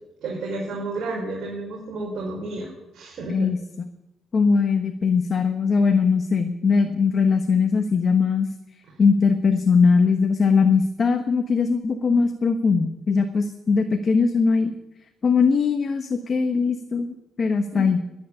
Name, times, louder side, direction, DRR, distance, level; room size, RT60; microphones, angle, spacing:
voice 1, 0.2-3.5 17.7-18.1, right 2 dB, 65° right, -3 dB, 5.0 m, -31 dB
voice 2, 4.3-8.5 9.0-14.7 15.2-18.0, left 5 dB, 45° left, 7 dB, 1.2 m, -20 dB
11.5 x 10.0 x 9.9 m, 0.96 s
cardioid pair, 90°, 0 cm